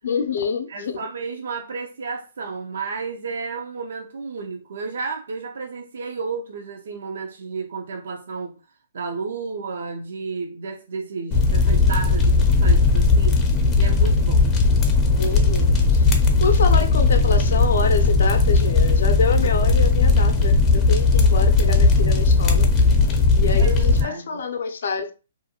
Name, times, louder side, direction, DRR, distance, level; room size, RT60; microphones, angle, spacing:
voice 1, 0.0-1.1 15.2-22.7 23.4-25.1, left 4 dB, 70° left, 0.5 m, -26 dB
voice 2, 0.7-8.5 8.9-13.4 13.7-14.6 23.6-24.4, right 4 dB, 70° right, 0.4 m, -32 dB
sound 1, 11.3-24.0, left 3 dB, 20° left, 0.4 m, -17 dB
2.5 x 2.2 x 2.8 m
hypercardioid pair, 150°, 0 cm